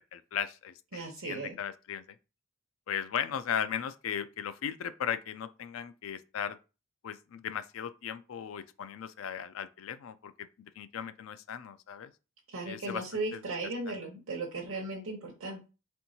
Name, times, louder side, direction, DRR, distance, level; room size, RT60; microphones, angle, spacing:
voice 1, 0.1-2.2 2.9-6.6 7.0-10.5 10.8-12.1 12.7-13.0 13.3-13.4 13.9-14.0, left 8 dB, 80° left, 0.4 m, -37 dB
voice 2, 0.9-1.6 12.5-15.6, right 2 dB, 80° right, 0.9 m, -36 dB
4.4 x 3.5 x 2.8 m
head